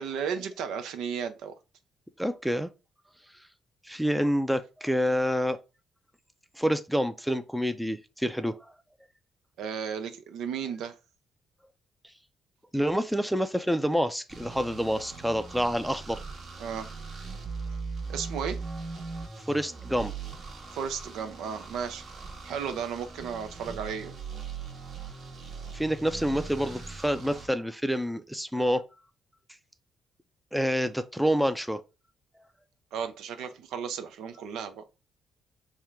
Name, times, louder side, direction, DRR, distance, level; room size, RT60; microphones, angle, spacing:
voice 1, 0.0-1.5 9.6-10.9 16.6-16.9 18.1-18.6 20.7-22.0 22.4-24.1 32.9-34.8, right 7 dB, 85° right, 0.5 m, -34 dB
voice 2, 2.2-2.7 3.8-5.6 6.6-8.7 12.7-16.2 19.5-20.1 25.7-28.8 30.5-31.8, equal, ahead, 0.4 m, -27 dB
sound 1, 14.3-27.5, right 4 dB, 55° right, 1.1 m, -40 dB
3.6 x 2.1 x 4.4 m
cardioid pair, 90°, 0 cm